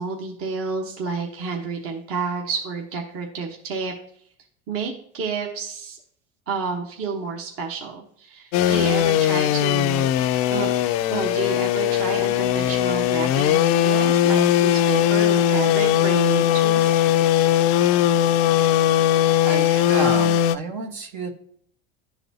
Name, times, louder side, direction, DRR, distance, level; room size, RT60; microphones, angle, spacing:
voice 1, 0.0-3.9 4.7-6.0 6.5-10.1 10.5-10.7 11.1-16.9, right 5 dB, 45° right, 1 dB, 1.1 m, -30 dB
sound 1, 8.5-20.6, left 11 dB, 60° left, 0.4 m, -19 dB
voice 2, 19.4-21.3, right 3 dB, 70° right, 2 dB, 1.5 m, -29 dB
11.5 x 4.0 x 2.8 m, 0.64 s
supercardioid pair, 105°, 31 cm